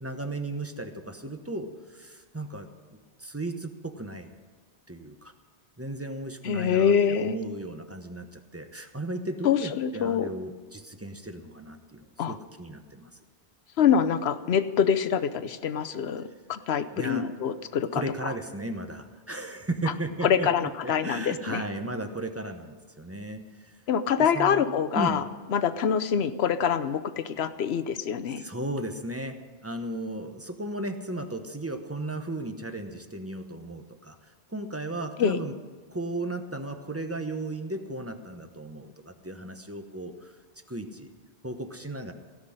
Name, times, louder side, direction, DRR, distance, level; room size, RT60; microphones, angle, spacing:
voice 1, 0.0-4.3 4.9-5.3 5.8-13.1 16.9-17.3 17.9-23.7 24.2-24.7 24.9-25.2 28.4-29.4 29.6-35.6 35.9-40.3 40.7-41.1 41.4-42.1, right 2 dB, 15° right, 6 dB, 0.9 m, -35 dB
voice 2, 6.4-7.4 9.4-10.3 12.2-12.4 13.8-18.3 20.2-21.6 23.9-25.2 25.5-28.4 35.2-35.4, left 7 dB, 70° left, 11 dB, 1.0 m, -25 dB
17.0 x 6.1 x 9.9 m, 1.5 s
omnidirectional pair, 1.1 m